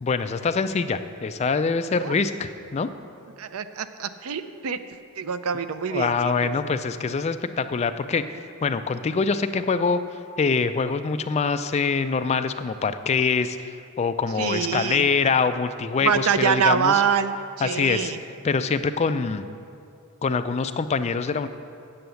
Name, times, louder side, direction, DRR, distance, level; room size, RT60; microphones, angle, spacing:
voice 1, 0.0-2.9 5.9-8.2 8.6-10.0 10.4-13.6 14.0-17.0 17.6-18.1 18.4-19.4 20.2-21.5, left 5 dB, 30° left, 10 dB, 0.3 m, -24 dB
voice 2, 3.4-4.8 5.2-6.5 14.4-15.1 16.0-18.2, right 7 dB, 70° right, 11 dB, 0.5 m, -25 dB
7.8 x 7.7 x 6.9 m, 2.5 s
head